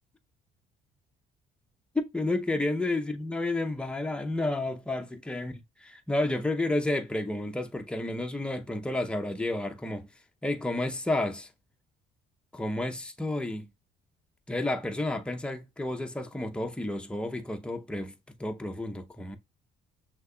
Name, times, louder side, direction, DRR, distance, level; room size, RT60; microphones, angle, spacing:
voice 1, 1.9-10.1 10.4-11.5 12.5-13.7 14.5-18.1 18.4-19.4, left 2 dB, 5° left, 0.7 m, -31 dB
6.2 x 2.9 x 2.2 m
cardioid pair, 110°, 17 cm